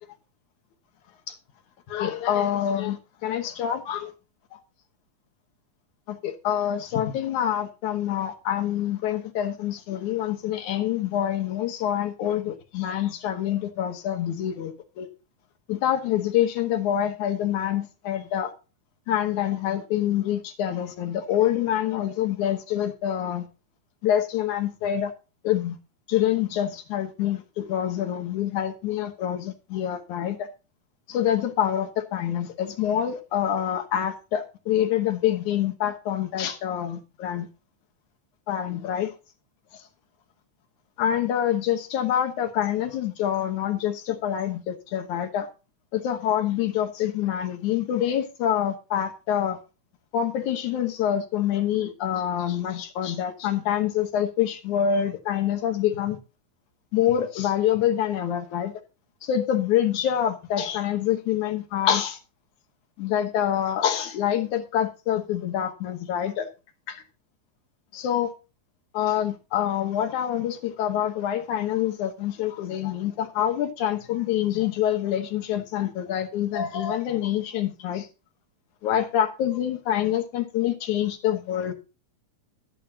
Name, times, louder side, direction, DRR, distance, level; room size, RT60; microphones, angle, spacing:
voice 1, 1.9-4.1 6.1-15.1 15.7-18.5 19.1-23.5 24.0-25.1 25.4-25.8 26.1-30.5 31.1-37.5 38.5-39.1 41.0-45.5 45.9-49.6 50.1-56.2 56.9-58.7 59.2-62.2 63.0-66.5 66.9-67.0 67.9-68.3 68.9-78.0 78.8-81.7, left 10 dB, 75° left, 2.6 m, -26 dB
12.0 x 11.0 x 2.8 m
omnidirectional pair, 3.6 m